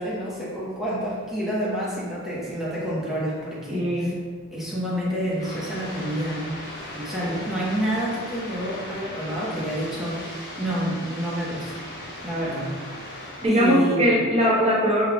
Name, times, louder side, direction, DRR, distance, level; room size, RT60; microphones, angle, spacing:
voice 1, 0.0-4.1 4.5-6.5 6.9-11.8 12.2-12.7 13.5-14.1, equal, ahead, -8 dB, 1.0 m, -28 dB
voice 2, 3.7-4.2 13.4-15.0, equal, 30° right, -4 dB, 0.9 m, -20 dB
sound 1, 5.4-13.5, left 1 dB, 45° left, 1.4 m, -38 dB
5.2 x 4.1 x 2.3 m, 1.6 s
head